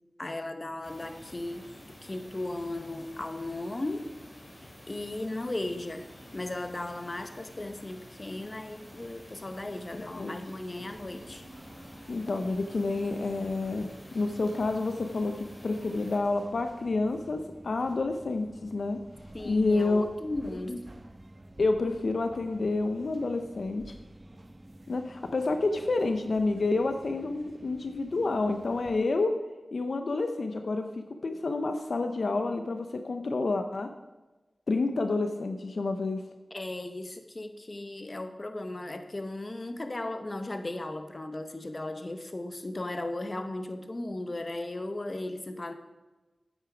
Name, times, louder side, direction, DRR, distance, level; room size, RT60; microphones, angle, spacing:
voice 1, 0.2-1.7 2.0-4.1 4.9-6.1 6.3-11.4 19.3-20.9 36.5-45.7, left 2 dB, 40° left, 8 dB, 0.9 m, -36 dB
sound 1, 0.8-16.2, left 1 dB, 25° left, 3.6 m, -50 dB
sound 2, 10.9-29.0, right 1 dB, 40° right, 1.1 m, -50 dB
voice 2, 12.1-19.0 19.4-20.0 21.6-23.9 24.9-29.3 29.7-33.9 34.7-36.2, left 3 dB, 75° left, 7 dB, 0.6 m, -29 dB
9.0 x 8.3 x 5.0 m, 1.1 s
cardioid pair, 50°, 0 cm